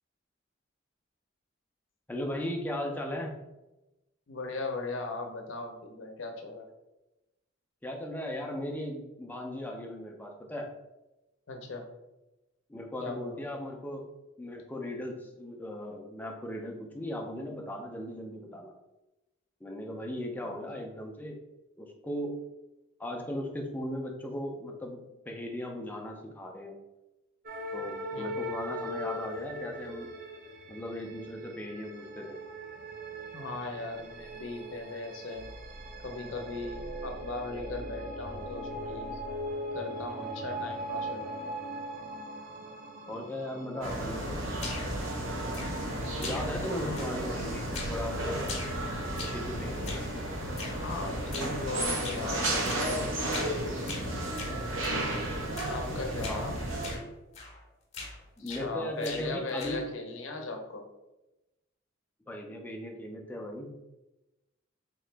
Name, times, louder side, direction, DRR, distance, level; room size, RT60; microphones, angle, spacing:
voice 1, 2.1-3.3 7.8-10.7 12.7-14.1 14.4-18.7 19.6-21.4 21.8-22.4 23.0-26.7 27.7-30.1 30.7-32.4 43.1-44.4 46.2-48.4 49.1-50.0 56.1-56.5 58.4-59.9 62.3-63.8, left 1 dB, 10° left, 1 dB, 0.5 m, -37 dB
voice 2, 4.3-6.7 11.5-11.9 13.0-13.5 20.4-20.5 28.1-28.3 33.3-35.5 36.0-39.2 39.7-41.6 46.6-47.0 50.7-52.8 55.7-56.5 58.4-60.8, left 3 dB, 75° left, 4 dB, 0.7 m, -38 dB
sound 1, 27.4-46.5, equal, 45° right, 0.5 m, -40 dB
sound 2, 43.8-57.0, right 1 dB, 75° right, 0.9 m, -33 dB
sound 3, 44.6-45.0 45.5-45.9 46.2-46.7 47.0-47.4 47.7-48.0 48.4-49.5 49.8-50.1 50.6-50.8 51.3-51.6 52.0-52.3 52.7-52.9 53.3-53.6 53.9-55.0 55.6-55.8 56.2-56.4 56.8-57.1 57.3-57.6 57.9-58.7 59.0-59.9, left 3 dB, 35° left, 0.8 m, -41 dB
3.7 x 2.9 x 3.3 m, 0.99 s
head